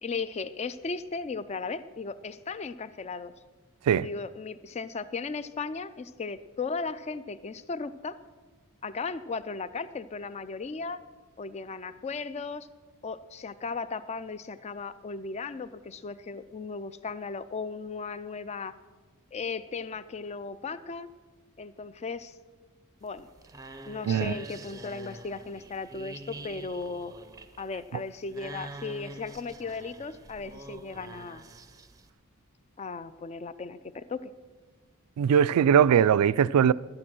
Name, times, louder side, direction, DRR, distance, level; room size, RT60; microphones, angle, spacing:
voice 1, 0.0-3.3 4.0-8.2 8.8-11.0 11.4-12.7 13.0-18.7 19.3-21.1 21.6-22.4 23.0-23.3 23.8-27.1 27.6-31.4 32.8-34.3, left 4 dB, 30° left, 0.4 m, -36 dB
sound 1, 23.0-32.1, right 2 dB, 15° right, 0.6 m, -45 dB
voice 2, 35.2-36.7, right 8 dB, 90° right, 0.3 m, -21 dB
12.0 x 8.7 x 6.1 m
head